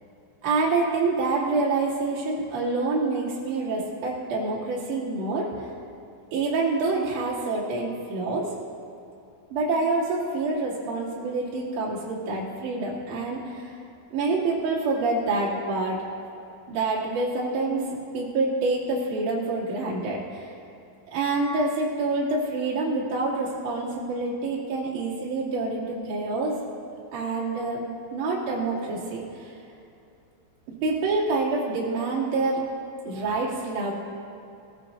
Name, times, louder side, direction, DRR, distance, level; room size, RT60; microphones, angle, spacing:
voice 1, 0.4-5.7 6.3-8.5 9.5-13.8 14.1-16.0 16.7-20.5 21.1-26.6 27.1-29.5 30.7-32.6 33.1-33.9, right 3 dB, 45° right, -6 dB, 3.4 m, -27 dB
20.5 x 14.0 x 2.6 m, 2.8 s
omnidirectional pair, 5.6 m